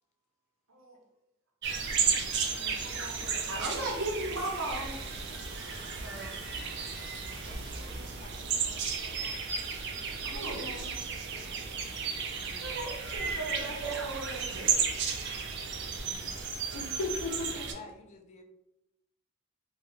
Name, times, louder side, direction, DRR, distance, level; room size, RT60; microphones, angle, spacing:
sound 1, 1.6-17.7, right 6 dB, 55° right, 0.4 m, -34 dB
voice 1, 2.5-3.9 10.2-10.9 16.7-17.6, left 3 dB, 85° left, 1 dB, 0.6 m, -39 dB
voice 2, 3.5-4.9 6.0-6.3 10.2-11.0 12.6-14.9, right 2 dB, 75° right, -1 dB, 0.8 m, -37 dB
Water tap faucet / Sink (filling or washing), 4.3-9.8, right 1 dB, 25° right, 0.7 m, -52 dB
voice 3, 7.4-9.3 11.3-11.8 16.0-16.1 17.7-18.4, left 3 dB, 35° left, 5 dB, 0.3 m, -52 dB
2.5 x 2.3 x 3.0 m, 0.88 s
head